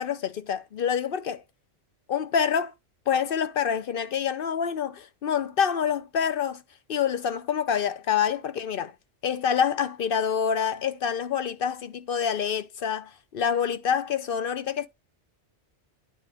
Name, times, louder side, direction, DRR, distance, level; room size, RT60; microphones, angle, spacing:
voice 1, 0.0-1.4 2.1-2.7 3.1-6.6 6.9-8.9 9.2-14.9, left 7 dB, 55° left, 0.8 m, -27 dB
10.5 x 3.8 x 3.4 m
omnidirectional pair, 1.2 m